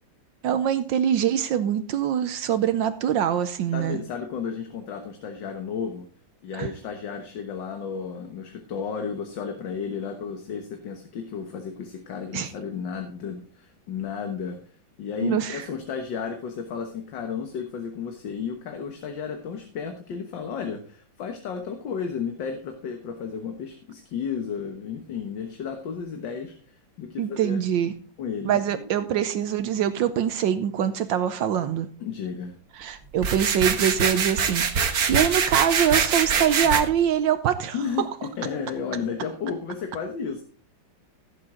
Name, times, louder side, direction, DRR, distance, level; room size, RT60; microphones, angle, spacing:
voice 1, 0.4-4.0 6.5-6.7 12.3-12.5 15.2-15.7 27.2-27.9 28.4-31.9 32.8-37.8, right 9 dB, 75° right, 11 dB, 1.4 m, -24 dB
voice 2, 3.7-6.1 6.4-14.6 15.0-27.6 28.2-29.2 32.0-32.6 37.7-40.4, left 6 dB, 70° left, 5 dB, 1.9 m, -33 dB
sound 1, 33.2-36.8, right 6 dB, 55° right, 1.6 m, -24 dB
15.5 x 7.6 x 3.8 m, 0.41 s
omnidirectional pair, 2.1 m